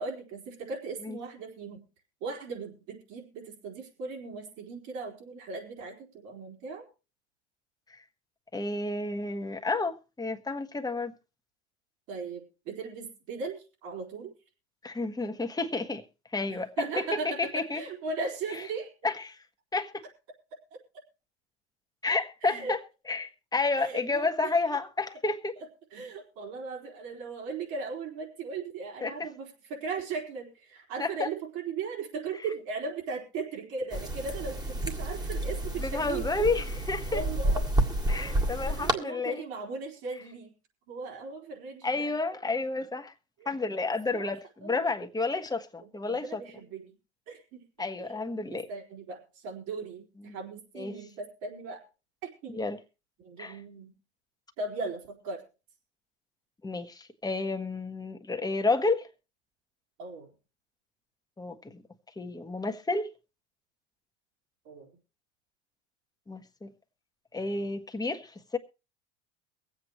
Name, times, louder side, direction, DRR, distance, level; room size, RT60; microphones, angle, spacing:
voice 1, 0.0-1.8 2.2-6.8 12.1-14.3 16.5-18.9 22.4-22.7 23.8-24.3 25.9-36.5 37.1-37.6 38.2-40.5 40.9-42.1 43.4-43.5 44.1-44.3 44.6-44.8 45.8-46.9 47.3-47.6 48.0-48.2 48.5-51.8 52.2-52.6 53.2-53.9 54.6-55.4 60.0-60.3 64.6-64.9, right 4 dB, 60° right, 4.4 m, -38 dB
voice 2, 8.5-11.1 14.8-16.0 16.3-16.7 17.0-17.1 17.4-17.8 19.0-19.4 19.7-20.0 22.0-22.8 23.1-25.6 29.0-29.1 31.0-31.3 35.8-37.2 38.1-39.4 41.8-43.1 43.4-46.4 47.8-48.7 50.7-51.0 52.5-52.8 53.4-53.6 56.6-59.1 61.4-61.8 62.2-63.1 66.3-66.7 67.3-68.6, left 3 dB, 10° left, 1.4 m, -31 dB
sound 1, 33.9-38.9, right 1 dB, 10° right, 1.8 m, -30 dB
23.0 x 8.3 x 3.1 m
hypercardioid pair, 85°, 33 cm